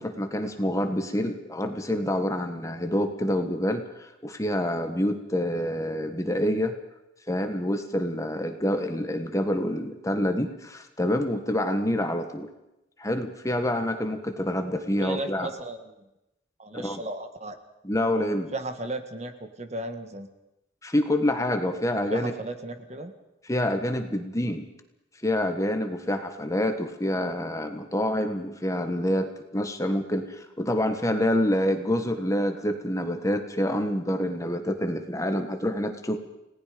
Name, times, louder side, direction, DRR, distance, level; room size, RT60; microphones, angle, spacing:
voice 1, 0.0-6.7 7.3-12.5 13.0-15.5 16.7-17.0 17.8-18.5 20.8-22.3 23.5-24.7 25.2-36.2, left 1 dB, 15° left, 6 dB, 1.6 m, -27 dB
voice 2, 15.0-15.9 16.6-17.6 18.5-20.3 22.1-23.1, right 2 dB, 35° right, 7 dB, 1.8 m, -35 dB
30.0 x 18.5 x 5.2 m, 0.91 s
head